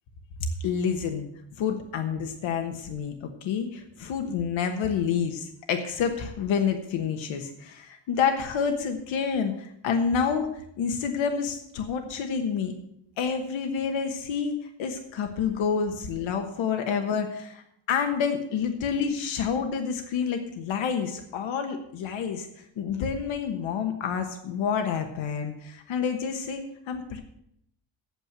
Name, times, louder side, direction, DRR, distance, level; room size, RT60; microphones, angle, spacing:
voice 1, 0.4-1.3 1.6-12.7 13.2-17.6 17.9-22.5 22.8-27.2, left 6 dB, 85° left, 5 dB, 1.3 m, -28 dB
8.9 x 7.5 x 7.8 m, 0.74 s
cardioid pair, 145°, 44 cm